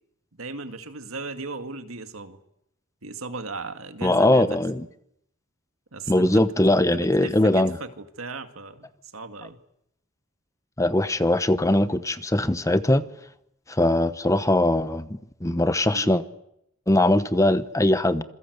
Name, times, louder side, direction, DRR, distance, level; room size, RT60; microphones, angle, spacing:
voice 1, 0.3-2.4 3.0-4.6 5.9-6.5 6.9-9.6 15.9-16.2, right 3 dB, 80° right, 2.1 m, -37 dB
voice 2, 4.0-4.8 6.1-7.8 10.8-13.0 13.7-16.2 16.9-18.2, left 1 dB, 15° left, 1.0 m, -21 dB
27.0 x 22.0 x 8.1 m
head